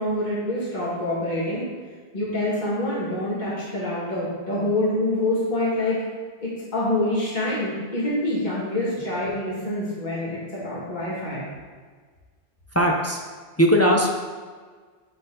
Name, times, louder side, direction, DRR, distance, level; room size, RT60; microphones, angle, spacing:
voice 1, 0.0-1.6 2.1-6.0 6.4-11.4, left 1 dB, 45° left, -9 dB, 1.9 m, -26 dB
voice 2, 12.7-13.2 13.6-14.1, equal, 20° left, 0 dB, 0.5 m, -19 dB
9.0 x 4.2 x 3.8 m, 1.5 s
omnidirectional pair, 1.1 m